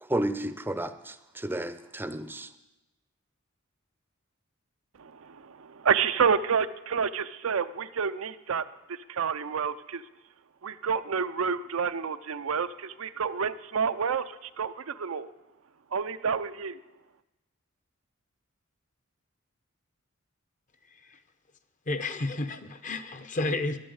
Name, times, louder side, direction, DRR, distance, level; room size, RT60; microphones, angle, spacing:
voice 1, 0.0-2.5, right 1 dB, 10° right, 11 dB, 0.6 m, -32 dB
voice 2, 5.0-8.6 8.9-10.0 10.6-15.3 15.9-16.8, right 6 dB, 75° right, 11 dB, 0.6 m, -29 dB
voice 3, 21.9-23.8, left 2 dB, 35° left, 11 dB, 0.7 m, -31 dB
11.0 x 10.5 x 8.0 m, 1.0 s
head